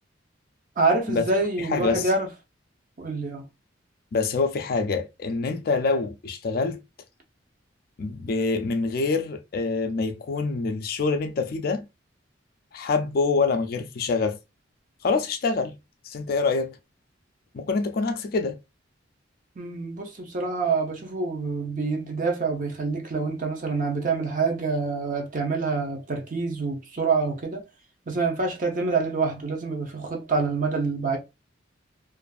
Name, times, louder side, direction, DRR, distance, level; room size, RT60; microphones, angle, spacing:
voice 1, 0.8-2.3 3.0-3.4 19.6-27.6 28.1-31.2, right 4 dB, 45° right, 0.7 m, -26 dB
voice 2, 1.6-2.1 4.1-6.8 8.0-11.9 12.7-14.4 15.0-15.8 16.0-16.8 17.5-18.6, left 4 dB, 50° left, 0.4 m, -25 dB
2.5 x 2.4 x 2.3 m
head